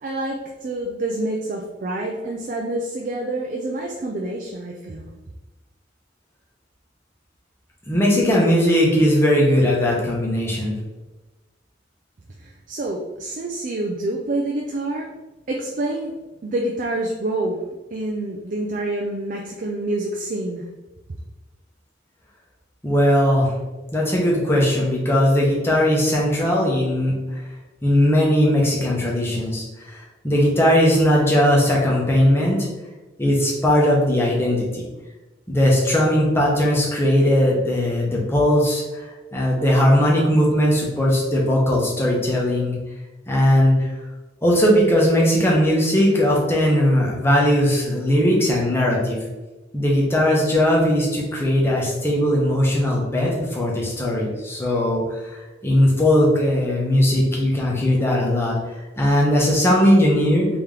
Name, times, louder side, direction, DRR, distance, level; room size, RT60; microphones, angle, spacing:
voice 1, 0.0-5.1 12.4-15.1 15.5-16.1 16.4-17.6 17.9-20.7, right 2 dB, 45° right, 0 dB, 0.4 m, -27 dB
voice 2, 7.9-10.7 22.8-23.6 23.9-27.4 27.8-32.7 33.2-34.8 35.5-39.0 39.3-42.7 43.3-43.9 44.4-49.2 49.7-55.4 55.6-58.6 59.0-60.5, equal, 15° left, -3 dB, 0.8 m, -19 dB
3.4 x 2.9 x 3.6 m, 1.1 s
head